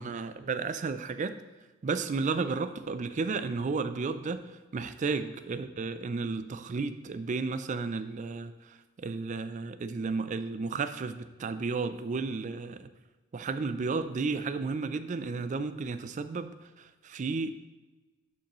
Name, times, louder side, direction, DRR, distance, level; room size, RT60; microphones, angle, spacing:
voice 1, 0.0-1.4 1.8-4.4 4.7-12.9 13.3-16.5 16.8-17.5, right 4 dB, 35° right, 12 dB, 0.3 m, -33 dB
10.5 x 5.2 x 3.0 m, 1.2 s
head